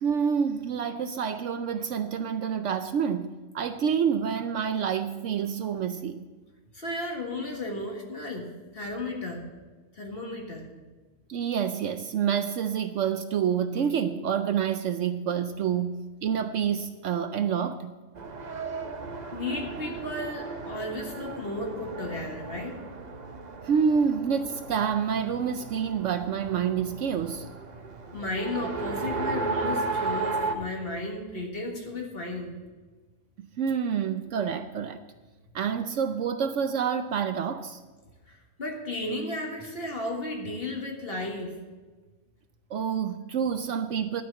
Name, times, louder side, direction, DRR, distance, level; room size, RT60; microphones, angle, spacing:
voice 1, 0.0-6.2 11.3-17.9 23.7-27.5 33.6-35.0 35.5-37.8 42.7-44.2, right 7 dB, 65° right, 9 dB, 0.9 m, -28 dB
voice 2, 6.7-9.5 9.9-10.7 19.3-22.8 28.1-32.5 38.3-41.6, left 2 dB, 45° left, 1 dB, 1.8 m, -34 dB
Race car auto racing, 18.1-30.5, right 3 dB, 35° right, 0.8 m, -35 dB
12.0 x 5.7 x 8.4 m, 1.3 s
omnidirectional pair, 1.5 m